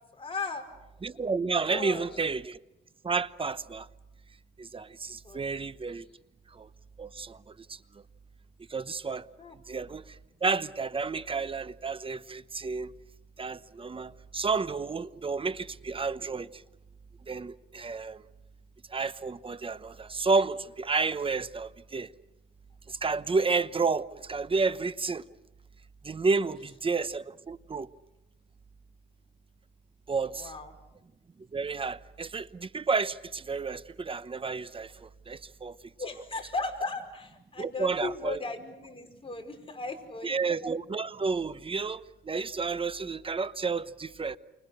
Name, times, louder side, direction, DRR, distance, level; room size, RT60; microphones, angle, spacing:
voice 1, 0.1-0.7 1.7-2.1 5.2-5.5 9.4-9.6 30.1-30.7 36.0-40.3, left 3 dB, 25° left, 4.8 m, -36 dB
voice 2, 1.0-2.6 3.0-3.9 4.6-6.0 6.5-6.7 7.0-7.4 7.7-7.8 8.7-9.2 9.7-10.0 10.4-12.9 13.4-16.5 17.3-18.2 18.9-22.1 22.9-25.3 26.0-27.9 30.1-30.5 31.5-35.8 37.6-38.4 40.2-44.4, right 4 dB, 25° right, 1.0 m, -31 dB
29.0 x 25.0 x 6.7 m
cardioid pair, 90°, 20 cm